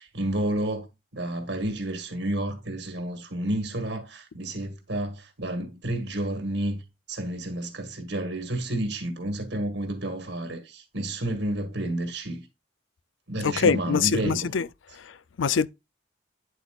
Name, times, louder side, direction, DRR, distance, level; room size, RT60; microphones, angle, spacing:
voice 1, 0.0-6.8 7.1-12.5 13.3-14.5, right 1 dB, 75° right, 1.7 m, -30 dB
voice 2, 13.4-14.7 14.9-15.7, left 6 dB, 85° left, 0.5 m, -24 dB
9.6 x 8.1 x 2.4 m
head